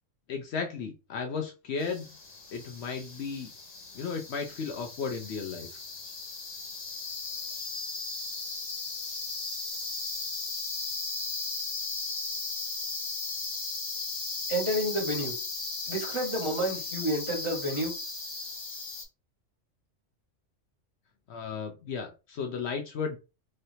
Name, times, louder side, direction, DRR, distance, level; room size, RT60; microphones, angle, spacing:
voice 1, 0.3-2.1 2.5-3.5 3.9-5.7 21.3-23.2, left 5 dB, 65° left, 4 dB, 0.8 m, -34 dB
sound 1, 1.8-19.0, left 3 dB, 85° left, 1.5 m, -36 dB
voice 2, 14.5-15.3 15.9-17.9, right 1 dB, 25° right, -3 dB, 1.3 m, -30 dB
3.2 x 2.7 x 2.7 m, 0.30 s
omnidirectional pair, 1.3 m